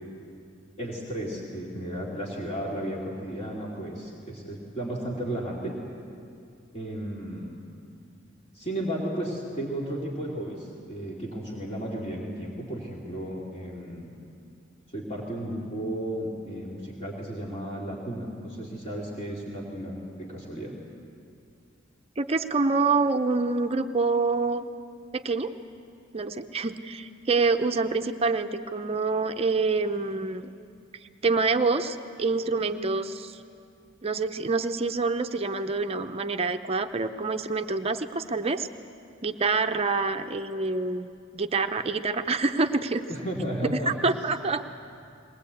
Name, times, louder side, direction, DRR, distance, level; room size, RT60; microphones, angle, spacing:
voice 1, 0.8-5.8 6.7-7.6 8.5-14.1 14.9-20.7 43.1-43.9, right 1 dB, 35° left, -4 dB, 2.8 m, -34 dB
voice 2, 22.2-24.6 25.1-25.5 26.1-30.5 31.2-33.4 34.0-38.7 39.2-41.1 41.3-43.0 43.6-44.6, right 3 dB, 30° right, 8 dB, 0.6 m, -26 dB
21.0 x 19.5 x 8.4 m, 2.5 s
head